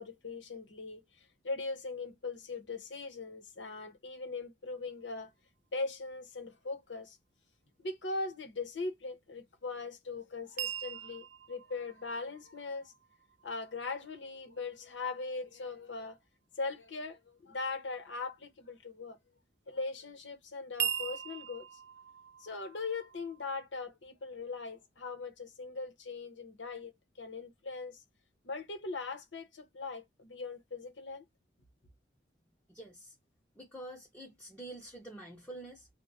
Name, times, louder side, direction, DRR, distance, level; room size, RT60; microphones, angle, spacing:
voice 1, 0.0-5.3 5.7-7.2 7.8-12.9 13.4-16.2 16.6-19.2 19.7-21.7 22.4-26.9 27.2-28.0 28.4-31.2, left 3 dB, 85° left, 1.0 m, -40 dB
sound 1, 10.6-14.6 20.8-23.5, right 10 dB, 70° right, 0.4 m, -41 dB
voice 2, 32.7-33.1 33.6-35.9, right 1 dB, 10° left, 0.7 m, -47 dB
3.1 x 2.3 x 3.9 m
head